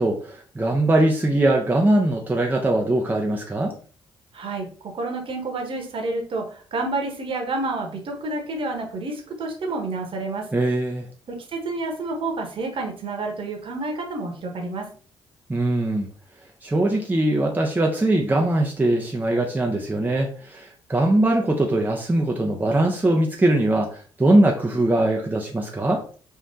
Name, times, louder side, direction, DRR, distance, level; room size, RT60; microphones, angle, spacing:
voice 1, 0.0-3.7 10.5-11.1 15.5-16.1 16.6-26.0, right 1 dB, 15° right, 1 dB, 0.8 m, -21 dB
voice 2, 4.3-4.7 4.9-10.4 11.3-14.9, right 2 dB, 45° right, 2 dB, 1.3 m, -29 dB
5.1 x 3.4 x 2.8 m, 0.41 s
figure-of-eight pair, 40°, 12 cm